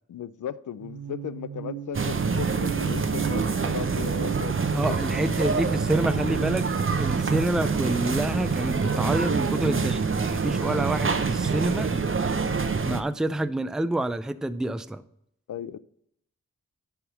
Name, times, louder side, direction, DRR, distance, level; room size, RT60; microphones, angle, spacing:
voice 1, 0.1-5.1 15.5-15.8, left 9 dB, 75° left, 0.5 m, -36 dB
sound 1, 0.8-12.8, right 9 dB, 80° right, 0.9 m, -40 dB
sound 2, 1.9-13.0, right 5 dB, 40° right, 0.8 m, -26 dB
voice 2, 4.7-6.7 6.9-12.0 12.8-15.0, right 1 dB, ahead, 0.4 m, -28 dB
10.5 x 3.6 x 7.2 m
cardioid pair, 55°, 31 cm